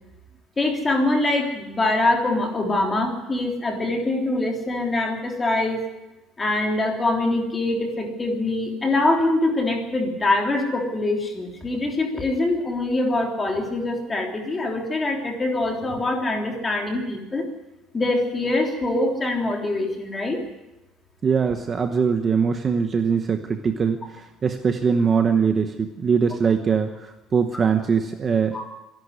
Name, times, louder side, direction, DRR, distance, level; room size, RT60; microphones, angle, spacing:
voice 1, 0.6-5.8 6.4-17.5 17.9-20.4 28.5-28.6, left 2 dB, 15° left, 2 dB, 3.4 m, -24 dB
voice 2, 21.2-28.7, right 6 dB, 25° right, 7 dB, 1.0 m, -22 dB
25.5 x 11.5 x 9.7 m, 1.0 s
cardioid pair, 170°, 0 cm